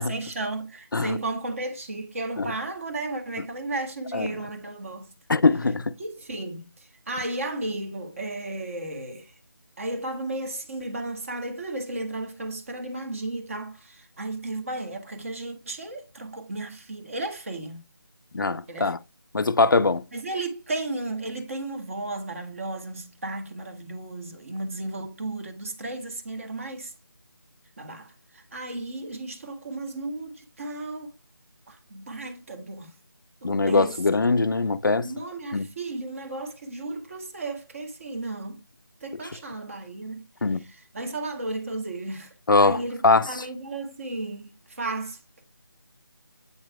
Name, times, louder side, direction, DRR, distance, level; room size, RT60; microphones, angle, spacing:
voice 1, 0.0-5.1 6.0-9.3 9.8-17.8 18.7-18.9 20.1-26.9 27.8-31.1 31.7-32.9 33.4-33.9 35.0-38.6 39.0-40.3 40.6-42.3 42.6-45.4, right 2 dB, 35° right, 1.5 m, -34 dB
voice 2, 5.3-5.9 18.3-19.0 19.3-20.0 33.4-35.1 35.5-35.7 40.4-40.7 42.5-43.4, left 3 dB, 60° left, 0.5 m, -22 dB
8.2 x 3.0 x 4.6 m
figure-of-eight pair, 165°, 12 cm